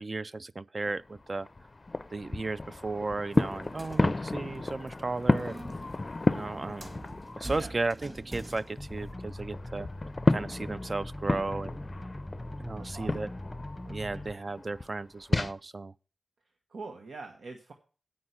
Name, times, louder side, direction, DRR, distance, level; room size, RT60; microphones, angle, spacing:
voice 1, 0.0-1.5 2.1-5.6 6.3-6.9 7.4-9.9 10.3-11.8 12.6-13.3 13.9-15.9, right 3 dB, 40° right, 0.4 m, -35 dB
sound 1, 0.9-7.7 8.0-15.5, left 2 dB, 35° left, 0.5 m, -32 dB
sound 2, 3.3-9.1, right 1 dB, 15° right, 1.8 m, -46 dB
sound 3, 8.8-14.3, left 1 dB, 10° left, 0.9 m, -41 dB
voice 2, 12.8-13.1 13.8-14.2 16.7-17.7, right 3 dB, 85° right, 1.1 m, -44 dB
8.7 x 5.6 x 7.9 m
wide cardioid pair, 95°, 0 cm